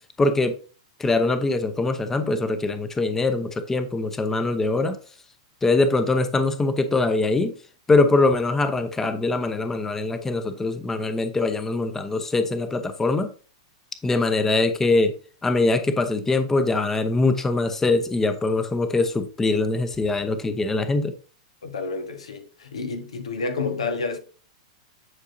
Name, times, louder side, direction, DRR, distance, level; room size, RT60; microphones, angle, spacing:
voice 1, 0.2-0.6 1.0-5.0 5.6-7.5 7.9-13.3 14.0-15.2 15.4-21.1, left 3 dB, 10° left, 0.8 m, -22 dB
voice 2, 21.6-24.2, left 4 dB, 90° left, 1.3 m, -29 dB
9.7 x 4.7 x 2.7 m
hypercardioid pair, 120°, 3 cm